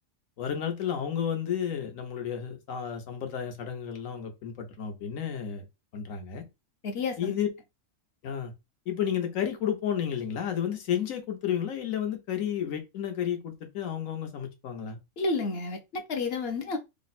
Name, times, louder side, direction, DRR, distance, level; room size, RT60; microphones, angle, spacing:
voice 1, 0.4-5.6 5.9-6.4 7.2-7.5 8.2-8.5 8.9-15.0, left 9 dB, 75° left, 1.3 m, -32 dB
voice 2, 6.8-7.4 15.2-16.8, left 3 dB, 55° left, 0.7 m, -30 dB
3.4 x 2.1 x 4.0 m
omnidirectional pair, 1.4 m